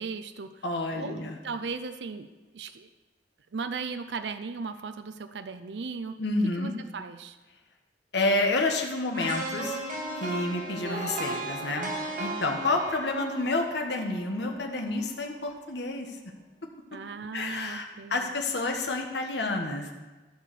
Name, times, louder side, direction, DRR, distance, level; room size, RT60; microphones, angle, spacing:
voice 1, 0.0-0.6 1.0-2.9 3.5-6.2 6.6-7.4 16.9-18.3, right 4 dB, 70° right, 10 dB, 0.5 m, -37 dB
voice 2, 0.6-1.4 6.2-6.7 8.1-9.8 10.2-11.9 12.2-16.2 17.3-19.9, left 2 dB, 70° left, 2 dB, 1.2 m, -29 dB
sound 1, 9.1-15.2 15.6-15.7, right 2 dB, 50° right, 1.9 m, -36 dB
13.5 x 4.7 x 6.8 m, 1.2 s
head